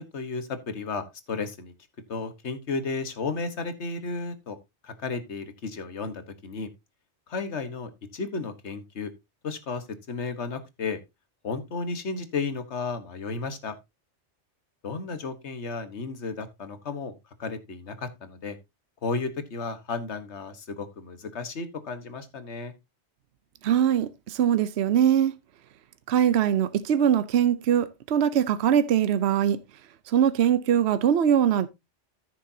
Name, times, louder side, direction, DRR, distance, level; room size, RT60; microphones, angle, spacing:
voice 1, 0.0-1.7 2.1-4.6 4.8-6.7 7.3-9.1 9.4-11.0 11.4-13.7 14.8-18.6 19.0-22.7, left 4 dB, 75° left, 1.6 m, -33 dB
voice 2, 23.6-25.3 26.1-29.6 30.1-31.7, right 9 dB, 70° right, 0.9 m, -22 dB
14.0 x 6.7 x 2.7 m
omnidirectional pair, 1.2 m